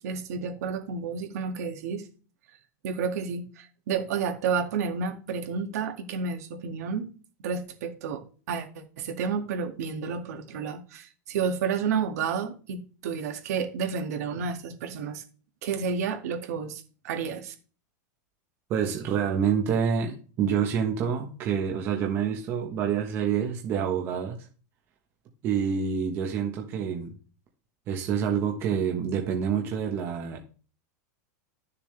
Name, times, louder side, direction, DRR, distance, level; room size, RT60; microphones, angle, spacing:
voice 1, 0.0-2.0 2.8-7.1 7.4-8.7 9.0-15.2 15.6-17.5, right 6 dB, 60° right, 2.0 m, -31 dB
voice 2, 18.7-24.4 25.4-27.1 27.9-30.4, right 7 dB, 25° right, 1.3 m, -27 dB
12.5 x 6.9 x 3.3 m
supercardioid pair, 175°, 9 cm